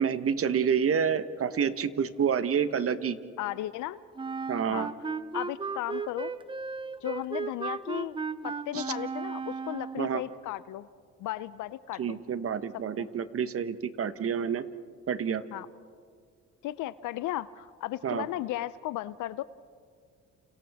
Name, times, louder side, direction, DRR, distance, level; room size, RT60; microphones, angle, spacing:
voice 1, 0.0-3.2 4.5-4.9 8.7-8.8 10.0-10.2 12.0-14.7 15.1-15.4 18.0-18.3, right 7 dB, 50° right, 12 dB, 1.1 m, -28 dB
voice 2, 3.4-4.0 4.7-4.9 5.3-6.3 7.0-8.2 8.4-10.9 11.2-12.2 13.0-13.1 15.5-15.7 16.6-19.4, left 15 dB, 85° left, 16 dB, 0.5 m, -35 dB
Wind instrument woodwind instrument, 4.2-10.1, right 4 dB, 15° right, 0.6 m, -35 dB
30.0 x 29.0 x 3.5 m, 2.1 s
cardioid pair, 90°, 30 cm